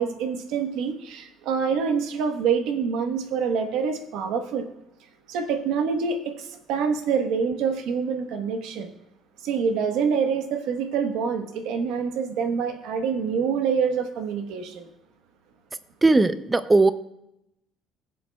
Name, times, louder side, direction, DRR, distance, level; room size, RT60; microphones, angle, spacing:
voice 1, 0.0-4.7 5.3-8.9 9.4-14.9, right 6 dB, 80° right, 7 dB, 1.1 m, -26 dB
voice 2, 16.0-16.9, right 3 dB, 15° right, 13 dB, 0.4 m, -18 dB
19.0 x 7.8 x 2.3 m, 0.84 s
cardioid pair, 155°, 0 cm